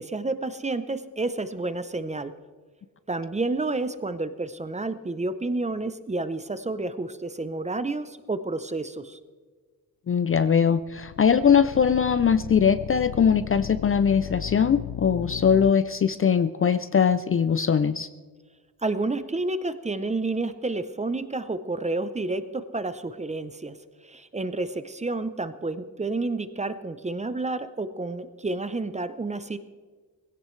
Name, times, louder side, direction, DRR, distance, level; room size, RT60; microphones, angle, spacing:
voice 1, 0.0-2.3 3.1-9.2 18.8-23.8 24.0-29.6, right 2 dB, 20° right, 11 dB, 0.6 m, -30 dB
voice 2, 10.1-18.1, left 7 dB, 40° left, 13 dB, 0.4 m, -21 dB
sound 1, 10.7-15.7, left 11 dB, 80° left, 0.6 m, -36 dB
20.0 x 16.5 x 3.2 m, 1.5 s
wide cardioid pair, 155°, 36 cm